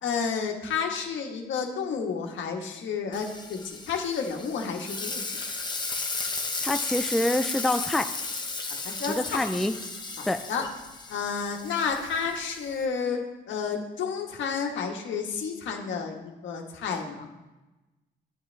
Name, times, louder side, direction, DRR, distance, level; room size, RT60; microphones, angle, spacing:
voice 1, 0.0-5.2 8.8-9.4 10.2-10.6 11.1-17.3, left 6 dB, 70° left, 2 dB, 1.5 m, -31 dB
Frying (food), 3.1-12.8, left 3 dB, 20° left, 1.1 m, -35 dB
voice 2, 6.6-8.1 9.1-9.8 10.3-10.4, left 1 dB, ahead, 8 dB, 0.4 m, -26 dB
9.6 x 8.7 x 3.4 m, 1.1 s
cardioid pair, 90°, 20 cm